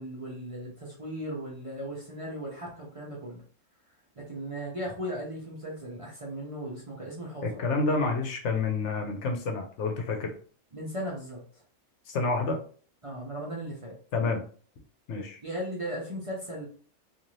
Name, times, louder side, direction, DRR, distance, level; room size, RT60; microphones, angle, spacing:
voice 1, 0.0-3.4 4.2-7.7 10.7-11.4 13.0-13.9 15.4-16.7, equal, 35° right, -4 dB, 0.6 m, -37 dB
voice 2, 7.4-10.3 12.1-12.6 14.1-14.4 15.1-15.4, left 3 dB, 65° left, 4 dB, 0.9 m, -28 dB
2.6 x 2.5 x 3.0 m, 0.43 s
omnidirectional pair, 1.3 m